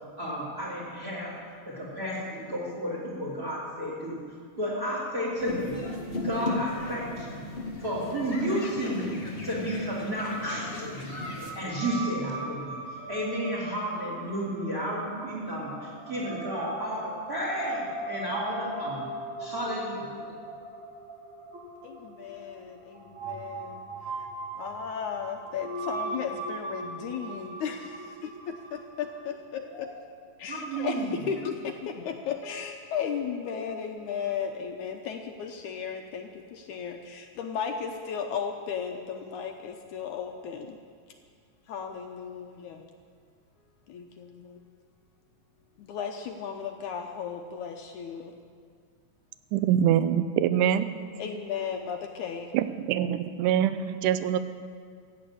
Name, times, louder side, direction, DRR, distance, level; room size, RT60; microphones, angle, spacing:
voice 1, 0.2-1.4 1.7-4.2 4.5-5.8 6.1-7.4 7.8-9.2 9.4-11.2 11.5-12.8 13.1-19.1 19.4-20.3 29.6-29.8 30.5-31.1, equal, 30° right, -5 dB, 3.3 m, -32 dB
sound 1, 5.4-11.5, left 2 dB, 35° left, 0.8 m, -36 dB
sound 2, 11.1-29.2, right 2 dB, 60° right, 3.7 m, -40 dB
voice 2, 21.8-23.8 24.6-29.9 30.4-40.8 41.7-42.9 43.9-44.6 45.8-48.3 51.2-52.5, left 7 dB, 75° left, 3 dB, 2.1 m, -35 dB
voice 3, 49.5-50.9 52.5-54.4, right 10 dB, 85° right, 12 dB, 2.1 m, -24 dB
15.0 x 8.8 x 8.5 m, 2.1 s
omnidirectional pair, 3.7 m